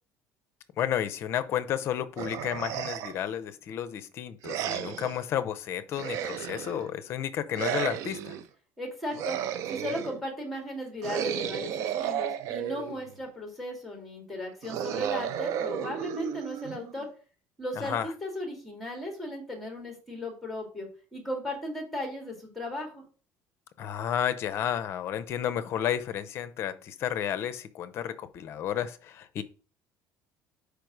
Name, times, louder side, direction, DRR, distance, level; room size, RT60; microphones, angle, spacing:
voice 1, 0.8-8.3 17.8-18.1 23.8-29.4, left 10 dB, 45° left, 0.6 m, -32 dB
sound 1, 2.2-3.3 4.4-5.2 5.9-6.9 7.5-8.4 9.1-10.2 11.0-13.1 14.6-17.0, right 10 dB, 60° right, 0.5 m, -33 dB
voice 2, 8.8-9.4 9.7-17.1 17.6-23.0, left 1 dB, ahead, 2.0 m, -36 dB
5.1 x 4.9 x 4.6 m
cardioid pair, 155°, 6 cm